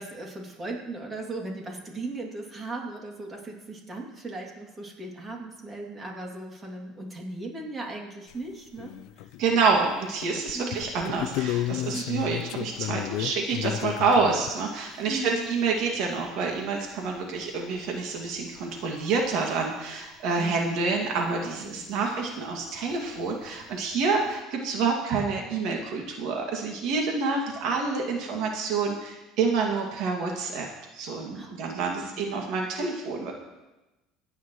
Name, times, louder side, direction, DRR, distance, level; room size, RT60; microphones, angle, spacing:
voice 1, 0.0-9.3 10.5-10.8 11.9-12.3 15.1-15.5 20.4-20.9 21.6-22.0 27.7-27.8 28.1-28.3 31.3-32.4, right 2 dB, 25° right, 0 dB, 2.7 m, -38 dB
sound 1, 8.3-8.4 8.8-9.8 10.2-14.5 17.2-17.3 17.4-17.5 18.6-18.7 19.2-19.3 22.9-23.0 23.2-23.6, left 12 dB, 75° left, 0.5 m, -32 dB
voice 2, 9.4-30.7 30.9-33.3, right 4 dB, 65° right, 0 dB, 2.2 m, -27 dB
25.5 x 9.4 x 3.2 m, 1.1 s
cardioid pair, 120°, 0 cm